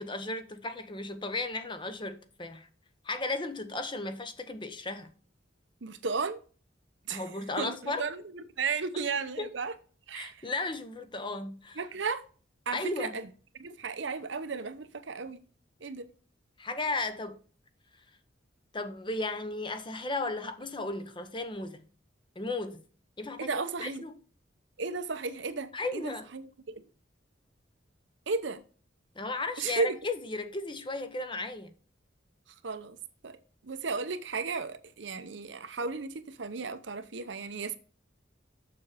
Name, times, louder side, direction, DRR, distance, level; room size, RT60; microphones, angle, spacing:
voice 1, 0.0-2.7 3.0-5.1 7.1-8.1 9.4-9.5 10.1-11.8 12.7-13.2 16.6-17.4 18.7-21.8 22.4-22.8 23.2-24.2 25.7-26.2 29.2-31.7, left 2 dB, 25° left, 0.9 m, -35 dB
voice 2, 5.8-6.4 7.1-7.2 7.6-9.7 10.1-10.5 11.8-12.2 12.7-13.3 13.6-15.4 15.8-16.1 23.4-24.0 24.8-26.8 28.3-28.6 29.6-30.0 32.6-33.0 33.2-33.4 33.6-37.8, right 4 dB, 75° right, 0.8 m, -34 dB
7.0 x 6.7 x 5.0 m
head